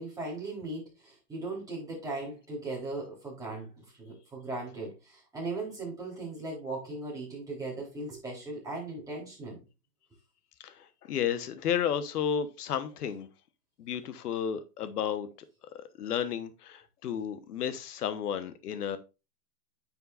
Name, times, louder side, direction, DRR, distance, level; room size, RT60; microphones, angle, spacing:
voice 1, 0.0-9.6, right 2 dB, 5° right, 3.6 m, -38 dB
voice 2, 11.0-13.3 13.8-15.3 16.0-19.0, left 8 dB, 65° left, 1.2 m, -32 dB
9.4 x 5.7 x 2.5 m
hypercardioid pair, 145°, 50 cm